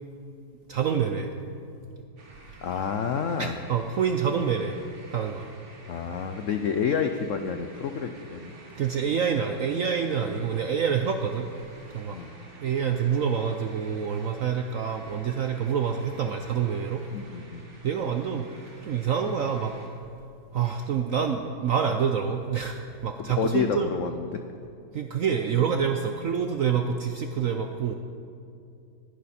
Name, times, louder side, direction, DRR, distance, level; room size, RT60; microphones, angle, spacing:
voice 1, 0.7-1.3 3.4-4.8 5.1-5.5 8.8-11.5 11.9-12.2 12.6-17.0 17.8-18.5 18.8-19.7 20.5-22.8 23.0-23.9 24.9-27.9, right 7 dB, 70° right, 6 dB, 0.7 m, -27 dB
sound 1, 2.2-19.9, right 2 dB, 40° right, 1.7 m, -51 dB
voice 2, 2.6-3.6 5.9-8.6 12.1-12.3 17.1-17.6 23.2-24.4, left 6 dB, 80° left, 7 dB, 0.7 m, -29 dB
20.0 x 11.0 x 4.3 m, 2.5 s
omnidirectional pair, 2.1 m